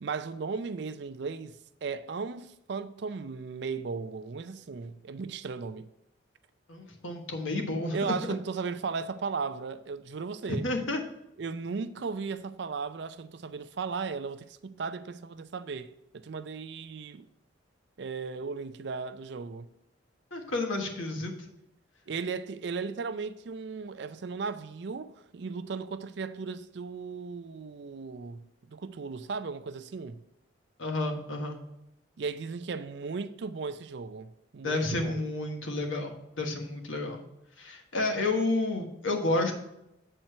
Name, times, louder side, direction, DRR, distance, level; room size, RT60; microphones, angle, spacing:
voice 1, 0.0-5.9 7.9-10.7 11.4-17.3 18.0-19.7 22.1-30.2 32.2-35.2, right 5 dB, 55° right, 0.4 m, -36 dB
voice 2, 6.7-8.0 10.5-11.0 20.3-21.5 30.8-31.6 34.6-37.2 37.6-39.5, left 2 dB, 75° left, 1.4 m, -30 dB
7.8 x 4.4 x 5.5 m
head